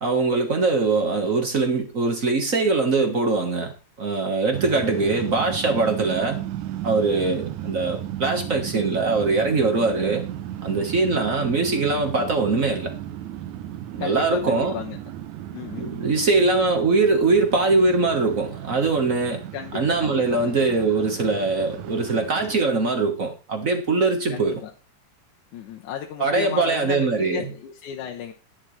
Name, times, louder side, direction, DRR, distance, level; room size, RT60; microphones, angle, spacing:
voice 1, 0.0-3.7 4.0-6.4 6.8-10.3 10.6-12.9 13.9-14.7 15.8-19.4 19.7-24.6 26.2-27.4, right 3 dB, 45° right, 1.0 m, -22 dB
sound 1, 4.5-22.6, right 12 dB, 85° right, 2.2 m, -35 dB
voice 2, 14.0-15.0 15.5-16.0 19.5-20.5 24.3-24.7 25.5-28.3, left 10 dB, 85° left, 2.5 m, -34 dB
11.0 x 10.0 x 3.2 m
omnidirectional pair, 3.4 m